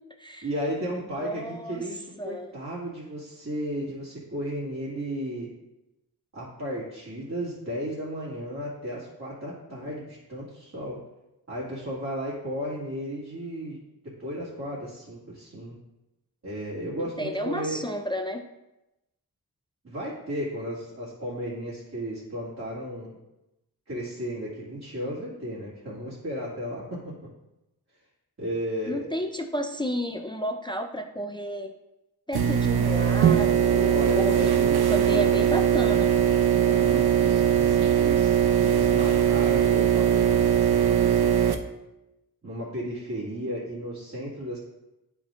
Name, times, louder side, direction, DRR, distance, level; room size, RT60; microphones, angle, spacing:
voice 1, 0.4-5.5 6.3-11.0 11.5-13.8 14.2-15.8 16.4-17.8 19.8-23.1 23.9-27.0 28.4-29.1 33.9-34.8 35.1-35.2 36.6-41.5 42.4-44.6, equal, 45° right, -9 dB, 2.1 m, -34 dB
voice 2, 1.2-1.8 2.2-2.5 17.2-18.4 28.9-31.7 32.3-34.5 34.9-36.1, equal, 15° left, 5 dB, 0.4 m, -31 dB
sound 1, 32.3-41.5, right 9 dB, 90° right, 0.6 m, -21 dB
10.0 x 6.0 x 2.5 m, 0.95 s
wide cardioid pair, 120°, 37 cm